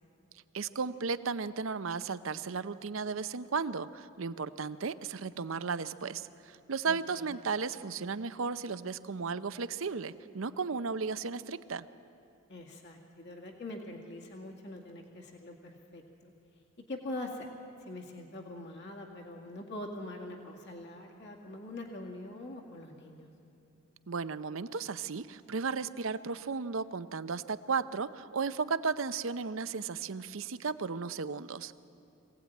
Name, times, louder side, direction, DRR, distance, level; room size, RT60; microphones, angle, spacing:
voice 1, 0.5-11.9 24.1-31.8, right 5 dB, 65° right, 13 dB, 0.7 m, -35 dB
voice 2, 6.9-7.4 12.5-16.3 16.9-17.5 17.9-23.3, left 1 dB, 55° left, 1 dB, 2.1 m, -43 dB
23.0 x 17.0 x 9.3 m, 2.6 s
head